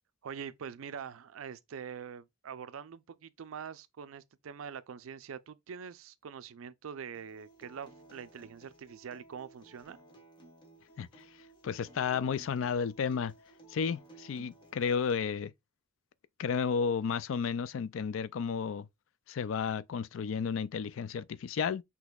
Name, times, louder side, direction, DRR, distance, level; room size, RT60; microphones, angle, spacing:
voice 1, 0.2-10.0, right 7 dB, 85° right, 0.4 m, -44 dB
Acoustic guitar, 7.1-15.1, right 2 dB, 25° left, 1.2 m, -57 dB
voice 2, 11.6-13.3 13.7-15.5 16.4-18.9 19.3-21.8, left 6 dB, 75° left, 0.4 m, -32 dB
6.1 x 2.9 x 2.3 m
head